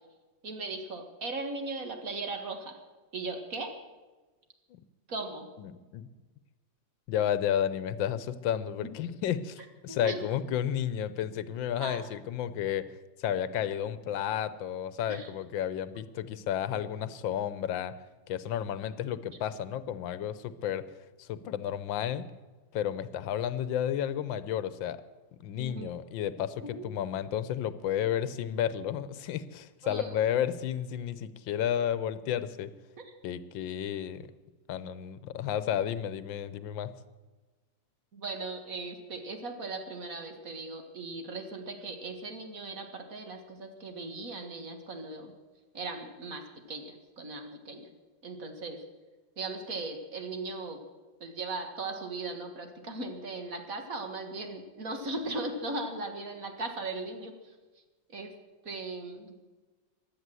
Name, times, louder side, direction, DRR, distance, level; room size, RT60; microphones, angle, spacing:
voice 1, 0.4-2.8 3.1-3.7 5.1-5.5 8.8-8.9 9.9-10.2 11.8-12.0 15.1-15.3 25.6-25.9 26.6-26.8 29.8-30.2 33.0-33.1 38.1-45.3 45.7-46.4 46.7-47.9 48.2-48.8 49.4-50.8 51.2-57.5 58.1-58.3 58.7-59.4, right 3 dB, 50° right, 5 dB, 2.0 m, -38 dB
voice 2, 5.6-6.1 7.1-17.9 18.3-20.8 21.2-22.3 22.7-25.0 25.4-32.7 33.2-34.3 34.7-36.9, left 10 dB, 85° left, 14 dB, 1.5 m, -32 dB
16.5 x 11.0 x 7.6 m, 1.2 s
omnidirectional pair, 2.0 m